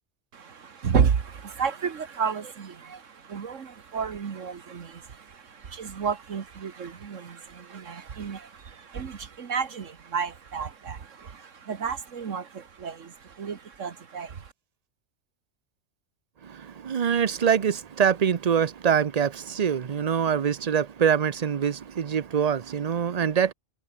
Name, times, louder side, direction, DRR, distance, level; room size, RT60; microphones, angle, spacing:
voice 1, 0.3-14.5, right 6 dB, 75° right, 1.7 m, -31 dB
voice 2, 16.4-23.5, right 7 dB, 40° right, 0.6 m, -24 dB
omnidirectional pair, 1.3 m